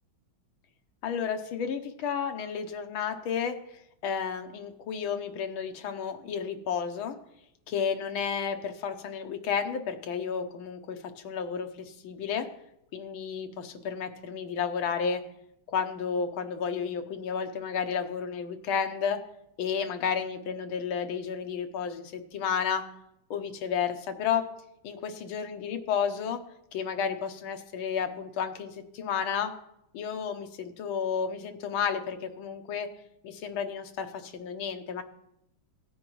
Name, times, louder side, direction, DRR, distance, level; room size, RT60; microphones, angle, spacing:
voice 1, 1.0-7.2 7.7-12.5 12.9-15.2 15.7-19.2 19.6-22.9 23.3-24.4 24.8-26.4 26.7-29.5 29.9-32.9 33.2-35.0, left 7 dB, 85° left, 6 dB, 1.7 m, -32 dB
17.0 x 9.2 x 3.0 m, 0.81 s
omnidirectional pair, 2.2 m